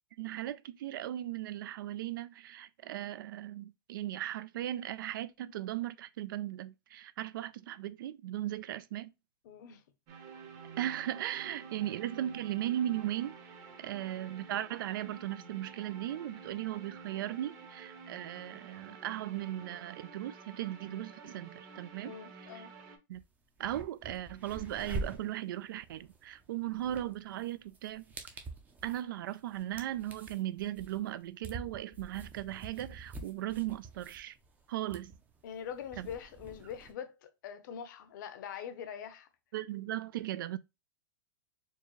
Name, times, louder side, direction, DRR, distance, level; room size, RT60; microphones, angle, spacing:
voice 1, 0.2-9.1 10.8-13.5 13.8-22.5 23.1-23.2 23.6-28.0 28.8-34.4 34.7-35.1 36.0-36.1 39.5-40.6, right 13 dB, 65° right, 0.4 m, -37 dB
voice 2, 9.4-9.8 13.9-14.2 22.0-22.7 35.4-39.3, left 8 dB, 55° left, 0.8 m, -44 dB
sound 1, 10.1-23.0, right 5 dB, 30° right, 0.9 m, -50 dB
sound 2, 23.1-23.2 23.6-36.9, right 3 dB, 15° right, 0.5 m, -46 dB
4.5 x 2.4 x 3.1 m
supercardioid pair, 160°, 12 cm